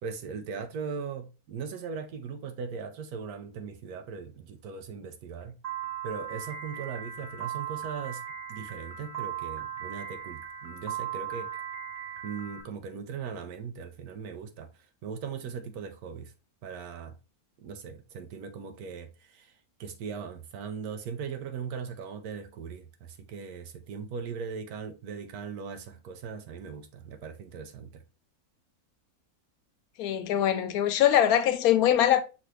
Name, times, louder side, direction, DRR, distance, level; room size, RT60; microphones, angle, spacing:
voice 1, 0.0-5.6 6.0-8.2 8.5-11.5 12.2-14.7 15.0-16.3 16.6-17.1 17.6-28.0, right 6 dB, 80° right, 1.1 m, -39 dB
Piano, 5.6-12.6, right 9 dB, 30° right, 0.9 m, -38 dB
voice 2, 30.0-32.2, left 11 dB, 75° left, 1.1 m, -22 dB
6.2 x 2.6 x 3.1 m
omnidirectional pair, 1.6 m